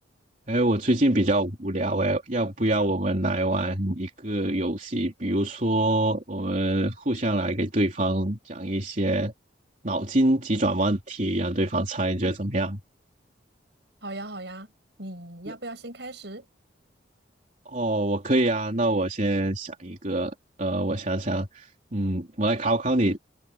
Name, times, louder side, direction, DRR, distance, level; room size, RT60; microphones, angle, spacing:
voice 1, 0.5-9.3 9.8-12.8 15.5-15.6 17.7-23.2, right 1 dB, 40° right, 3.5 m, -25 dB
voice 2, 14.0-14.7 15.0-16.4, right 2 dB, 65° right, 7.2 m, -38 dB
head